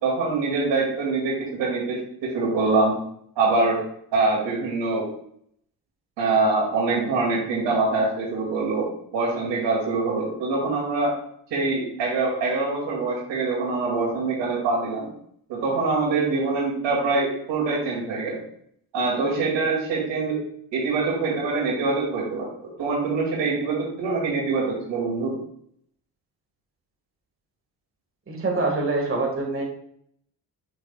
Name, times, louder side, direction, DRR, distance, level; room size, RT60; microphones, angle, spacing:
voice 1, 0.0-3.0 3.4-3.8 4.1-5.0 6.2-11.1 11.5-15.1 15.5-18.4 18.9-20.4 20.7-22.5 22.8-25.3, right 3 dB, 85° right, -4 dB, 2.5 m, -24 dB
voice 2, 28.3-29.6, right 3 dB, 30° right, 0 dB, 1.8 m, -25 dB
6.8 x 5.8 x 2.4 m, 0.68 s
supercardioid pair, 65°, 42 cm